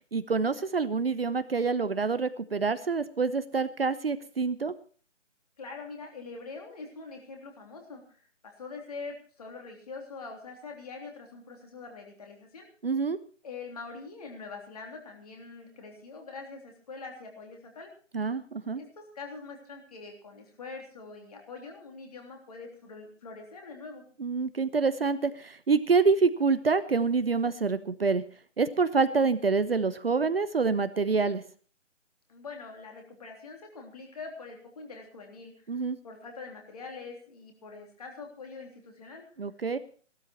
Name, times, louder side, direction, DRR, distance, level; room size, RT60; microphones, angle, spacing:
voice 1, 0.1-4.7 12.8-13.2 18.1-18.8 24.2-28.2 28.6-31.4 35.7-36.0 39.4-39.8, right 4 dB, 50° right, 13 dB, 0.8 m, -26 dB
voice 2, 5.6-12.7 13.4-17.9 18.7-24.0 32.3-39.2, left 4 dB, 30° left, 2 dB, 3.4 m, -44 dB
16.5 x 12.5 x 4.5 m, 0.42 s
figure-of-eight pair, 165°, 38 cm